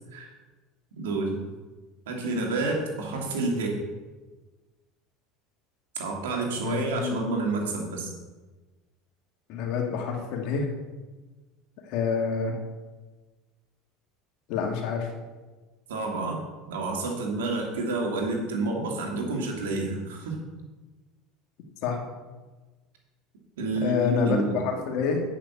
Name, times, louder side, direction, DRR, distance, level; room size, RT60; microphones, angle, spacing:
voice 1, 1.0-1.4 2.1-3.8 6.0-8.1 15.9-16.4 16.7-20.4 23.6-24.6, right 3 dB, 85° right, 0 dB, 2.4 m, -29 dB
voice 2, 6.6-7.2 9.5-10.7 11.9-12.5 14.5-15.1 21.8-22.0 23.8-25.2, left 6 dB, 65° left, 2 dB, 2.0 m, -27 dB
8.6 x 5.9 x 7.0 m, 1.3 s
hypercardioid pair, 90°, 0 cm